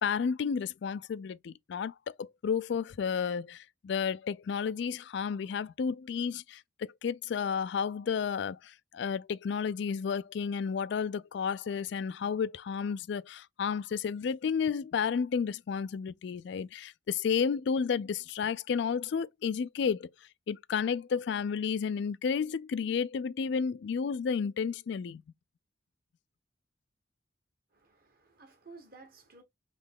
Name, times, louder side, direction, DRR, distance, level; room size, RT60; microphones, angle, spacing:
voice 1, 0.0-20.1 20.5-25.2, left 6 dB, 60° left, 0.3 m, -32 dB
voice 2, 27.7-29.4, right 3 dB, 50° right, 1.6 m, -54 dB
4.0 x 3.1 x 3.5 m
head